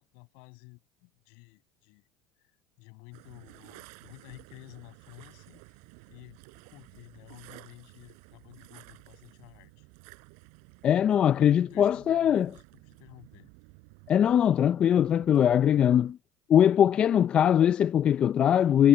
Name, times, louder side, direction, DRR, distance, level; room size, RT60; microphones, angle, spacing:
voice 1, 0.0-2.1 2.4-5.6 6.1-9.9 11.4-13.5, left 33 dB, 70° left, 6.8 m, -52 dB
sound 1, 3.1-16.1, right 40 dB or more, 75° right, 4.1 m, -53 dB
voice 2, 10.8-12.5 14.1-16.2 16.5-18.9, left 9 dB, 40° left, 0.5 m, -21 dB
supercardioid pair, 90°, 3 cm